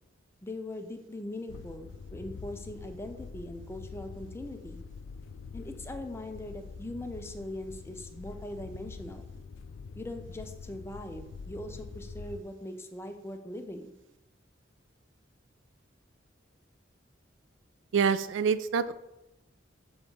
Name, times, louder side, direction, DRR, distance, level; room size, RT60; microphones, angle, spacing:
voice 1, 0.4-4.8 5.5-9.3 10.0-13.9, left 1 dB, 15° left, 6 dB, 0.5 m, -41 dB
sound 1, 1.5-12.4, left 5 dB, 90° left, 0.4 m, -45 dB
voice 2, 17.9-18.9, right 6 dB, 75° right, 14 dB, 0.3 m, -26 dB
6.7 x 3.9 x 3.6 m, 0.91 s
head